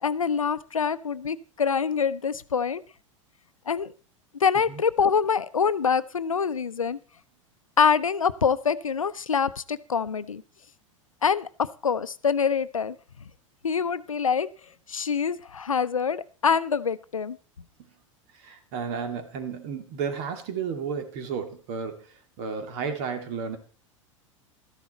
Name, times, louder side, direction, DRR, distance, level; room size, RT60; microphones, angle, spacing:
voice 1, 0.0-2.8 3.7-3.9 4.4-7.0 7.8-10.4 11.2-13.0 13.6-14.5 14.9-17.4, left 6 dB, 85° left, 15 dB, 0.6 m, -25 dB
voice 2, 18.4-22.1 22.4-23.6, right 6 dB, 55° right, 7 dB, 2.2 m, -32 dB
13.0 x 10.5 x 4.2 m, 0.38 s
figure-of-eight pair, 85°, 17 cm